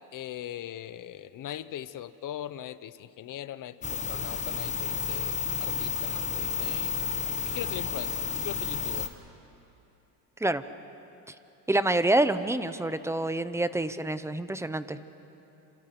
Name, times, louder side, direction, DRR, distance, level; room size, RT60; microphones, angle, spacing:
voice 1, 0.1-7.0 7.4-9.1, left 11 dB, 50° left, 15 dB, 1.0 m, -40 dB
sound 1, 3.8-9.1, left 5 dB, 15° left, 1.6 m, -31 dB
voice 2, 11.7-15.0, right 2 dB, 5° right, 12 dB, 0.8 m, -27 dB
30.0 x 27.5 x 6.1 m, 2.9 s
cardioid pair, 120°, 42 cm